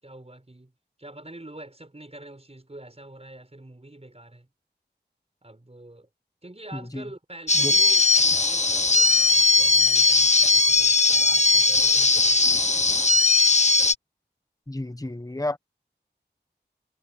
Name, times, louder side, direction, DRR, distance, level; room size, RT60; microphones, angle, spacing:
voice 1, 0.0-0.7 1.0-4.5 5.4-6.1 6.4-12.9, right 1 dB, 35° right, 5.9 m, -45 dB
voice 2, 6.7-7.1 7.5-7.7 14.7-15.6, left 1 dB, 20° left, 1.2 m, -31 dB
sound 1, 7.5-13.9, left 3 dB, 40° left, 0.8 m, -19 dB
wide cardioid pair, 55°, 18 cm